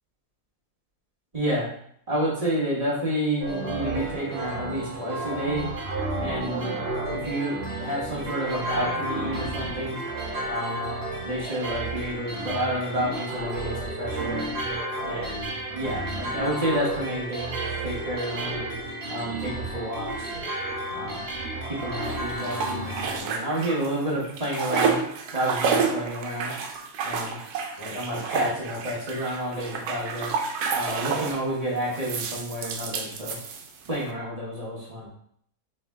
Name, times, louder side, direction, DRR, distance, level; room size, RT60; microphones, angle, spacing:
voice 1, 1.3-1.7 2.1-5.7 6.2-6.8 7.2-10.0 10.5-10.9 11.2-14.5 15.0-18.6 19.1-20.3 20.9-21.2 21.7-25.0 25.3-26.5 27.0-27.4 27.8-30.3 30.7-33.4 33.9-35.1, right 1 dB, 25° right, -6 dB, 1.0 m, -30 dB
sound 1, 3.4-23.2, right 2 dB, 50° right, 1.0 m, -32 dB
sound 2, 22.0-24.0 24.2-31.5 31.9-34.0, right 5 dB, 90° right, 1.2 m, -30 dB
4.2 x 3.2 x 3.4 m, 0.66 s
omnidirectional pair, 1.6 m